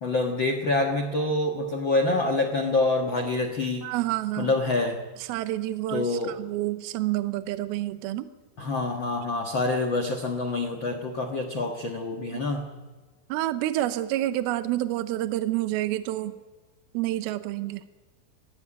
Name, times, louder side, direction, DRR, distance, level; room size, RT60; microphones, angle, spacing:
voice 1, 0.0-3.9 4.4-5.0 5.9-6.4 8.6-12.7, left 2 dB, 65° left, 3 dB, 1.1 m, -26 dB
voice 2, 3.8-4.5 5.2-8.3 12.3-12.4 13.3-16.4 16.9-17.8, right 15 dB, 75° right, 11 dB, 2.6 m, -28 dB
19.0 x 16.0 x 9.9 m, 1.3 s
omnidirectional pair, 4.7 m